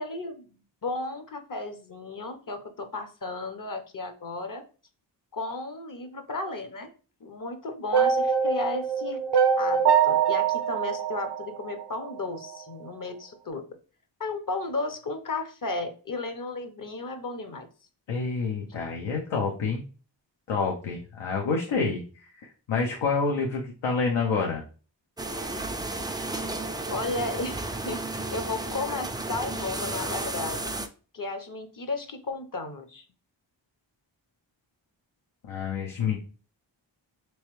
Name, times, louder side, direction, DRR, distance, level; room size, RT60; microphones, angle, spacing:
voice 1, 0.0-4.6 5.3-6.9 7.2-9.2 9.6-13.6 14.2-17.7 26.9-28.0 28.3-30.7 31.1-33.0, left 3 dB, 45° left, 8 dB, 0.7 m, -34 dB
sound 1, 7.9-12.1, right 7 dB, 60° right, 0.6 m, -23 dB
voice 2, 18.1-19.8 20.5-24.6 35.5-36.2, left 4 dB, 80° left, 0 dB, 0.7 m, -28 dB
sound 2, 25.2-30.9, right 2 dB, 10° right, 0.3 m, -33 dB
3.3 x 3.1 x 3.0 m, 0.37 s
cardioid pair, 50°, 46 cm